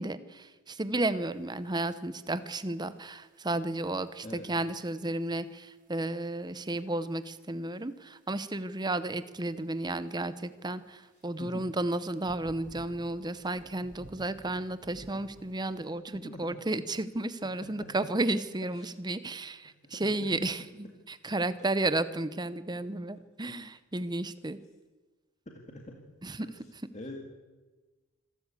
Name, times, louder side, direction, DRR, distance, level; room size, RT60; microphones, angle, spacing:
voice 1, 0.0-24.6 26.2-26.5, right 2 dB, 20° right, 14 dB, 0.9 m, -33 dB
sound 1, 1.3-15.9, right 1 dB, 40° right, 1.6 m, -57 dB
voice 2, 16.1-16.7 17.4-18.1 18.8-18.9 19.2-19.3 19.8-20.5 25.5-26.0 26.9-27.2, left 1 dB, 35° left, 1 dB, 2.2 m, -44 dB
25.5 x 13.0 x 8.4 m, 1.2 s
head